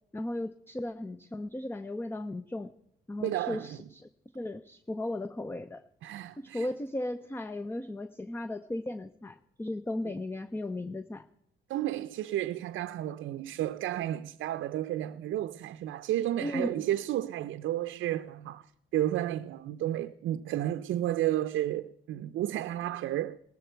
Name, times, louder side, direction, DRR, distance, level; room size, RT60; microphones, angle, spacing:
voice 1, 0.1-2.7 3.1-4.1 4.3-5.8 6.4-11.3 16.4-16.8, left 1 dB, 10° left, 0.6 m, -36 dB
voice 2, 3.2-3.8 6.0-6.7 11.7-18.6 18.9-23.4, right 13 dB, 75° right, 0.5 m, -32 dB
18.5 x 13.5 x 4.5 m
cardioid pair, 90°, 20 cm